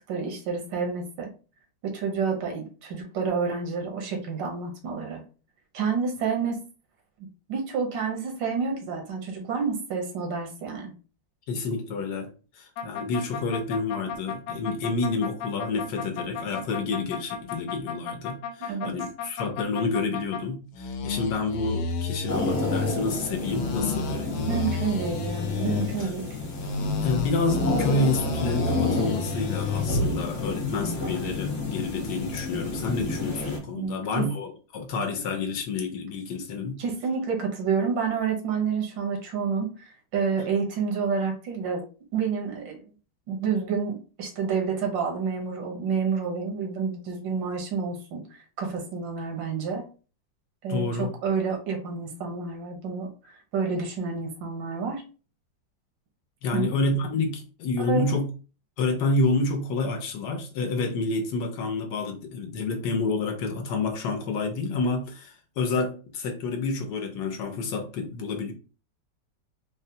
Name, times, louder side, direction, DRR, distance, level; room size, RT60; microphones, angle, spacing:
voice 1, 0.1-1.3 1.8-5.2 5.7-6.6 7.5-10.9 18.7-18.9 24.5-26.3 33.7-34.3 36.8-41.8 42.1-42.8 43.3-48.2 48.6-49.8 50.6-55.0 56.5-56.7 57.8-58.2, right 5 dB, 90° right, 1.6 m, -29 dB
voice 2, 11.5-24.5 26.0-26.1 27.0-36.8 50.7-51.1 56.4-58.3 58.8-68.5, left 3 dB, 75° left, 1.2 m, -29 dB
sound 1, 12.8-20.4 20.7-23.0 23.4-25.9 26.5-29.9, left 4 dB, 90° left, 1.3 m, -32 dB
sound 2, 22.3-33.6, left 2 dB, 45° left, 1.0 m, -30 dB
4.0 x 2.1 x 2.7 m
omnidirectional pair, 1.9 m